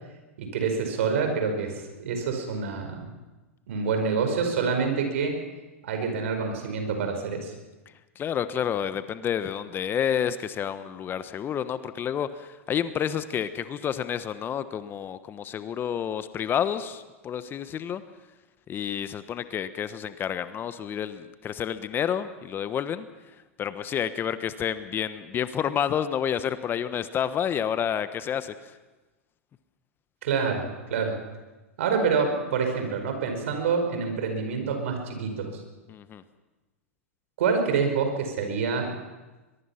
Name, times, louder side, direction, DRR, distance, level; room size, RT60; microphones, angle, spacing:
voice 1, 0.4-1.7 2.0-3.1 3.7-5.3 5.8-7.5 30.2-31.1 31.8-35.6 37.4-38.9, right 5 dB, 65° right, 5 dB, 5.2 m, -27 dB
voice 2, 8.1-18.0 18.7-23.1 23.6-28.7 35.9-36.2, left 9 dB, 30° left, 12 dB, 1.1 m, -29 dB
22.5 x 22.5 x 5.8 m, 1.2 s
hypercardioid pair, 100°, 8 cm